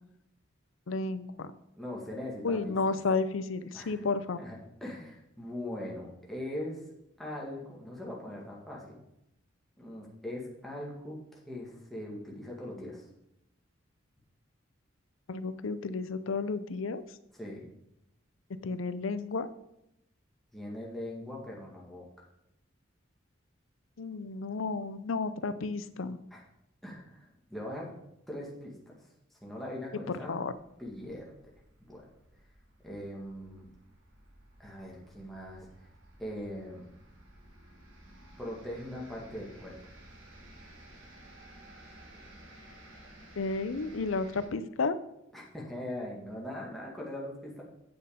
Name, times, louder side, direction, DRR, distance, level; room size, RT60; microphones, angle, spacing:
voice 1, 0.9-1.5 2.4-4.4 15.3-17.0 18.6-19.5 24.0-26.2 30.1-30.5 43.4-45.0, left 4 dB, 85° left, 13 dB, 0.6 m, -32 dB
voice 2, 1.8-3.0 3.7-4.0 4.4-6.8 7.2-9.0 9.8-11.2 11.5-13.0 17.4-17.6 20.5-22.1 26.3-26.4 26.8-27.9 28.3-29.0 29.4-30.3 30.8-31.3 31.9-32.1 32.8-33.7 34.6-35.7 36.2-36.8 38.4-39.8 45.3-47.6, left 1 dB, ahead, -4 dB, 2.0 m, -41 dB
sound 1, 30.4-44.5, right 1 dB, 90° right, 2.5 m, -54 dB
8.7 x 6.7 x 5.2 m, 0.83 s
head